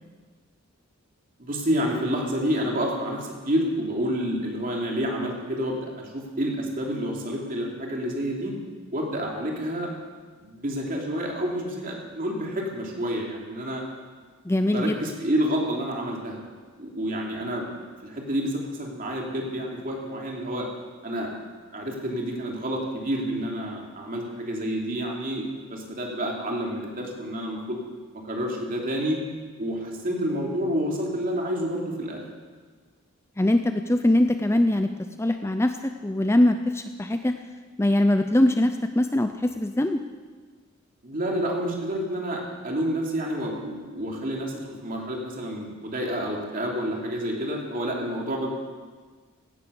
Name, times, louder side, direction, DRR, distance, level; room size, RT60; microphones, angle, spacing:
voice 1, 1.4-8.5 8.9-9.9 10.4-13.8 14.7-16.4 16.8-17.7 18.0-20.7 21.0-21.3 21.7-25.4 25.7-27.8 28.2-29.2 29.6-32.2 41.0-48.5, equal, 40° right, -1 dB, 2.9 m, -29 dB
voice 2, 14.5-15.0 33.4-34.9 35.2-35.8 36.0-37.3 37.8-40.0, left 1 dB, 10° left, 7 dB, 0.5 m, -22 dB
16.5 x 11.0 x 6.9 m, 1.5 s
head